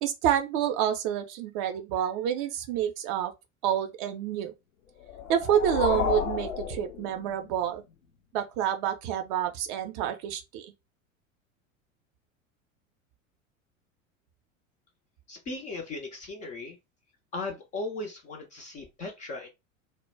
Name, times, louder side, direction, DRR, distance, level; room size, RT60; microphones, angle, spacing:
voice 1, 0.0-3.3 3.6-4.5 5.3-7.8 8.3-10.7, right 10 dB, 35° right, 0.5 m, -28 dB
sound 1, 5.0-7.6, left 6 dB, 70° left, 0.6 m, -31 dB
voice 2, 15.3-16.8 17.3-19.5, left 2 dB, 20° left, 0.4 m, -37 dB
2.1 x 2.0 x 3.1 m
figure-of-eight pair, 80°, 40 cm